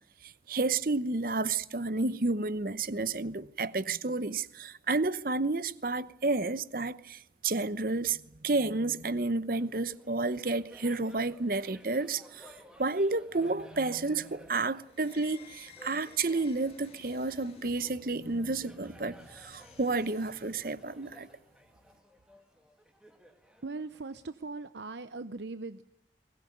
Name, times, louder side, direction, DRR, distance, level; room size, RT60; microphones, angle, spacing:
voice 1, 0.2-12.5 12.8-21.3, right 3 dB, 55° right, 0.9 m, -31 dB
Laughter, 9.5-24.5, equal, 5° right, 2.5 m, -56 dB
sound 1, 14.9-21.5, left 3 dB, 35° left, 2.1 m, -55 dB
voice 2, 23.6-25.8, right 3 dB, 85° right, 0.8 m, -39 dB
22.5 x 19.5 x 9.4 m
head